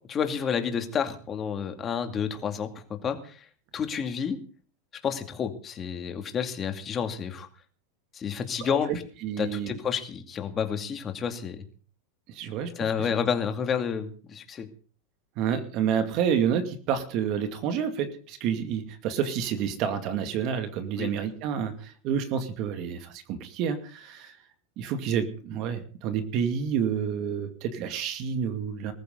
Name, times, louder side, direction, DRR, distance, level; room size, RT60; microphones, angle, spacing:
voice 1, 0.1-3.4 3.7-4.4 5.0-7.5 8.1-8.9 9.4-11.7 12.8-14.7 21.0-21.1, left 7 dB, 25° left, 6 dB, 2.4 m, -30 dB
voice 2, 9.2-9.7 12.3-12.7 13.0-13.1 15.4-24.3 24.8-28.9, right 8 dB, 45° right, 8 dB, 2.3 m, -29 dB
20.0 x 14.5 x 4.0 m, 0.42 s
supercardioid pair, 145°, 0 cm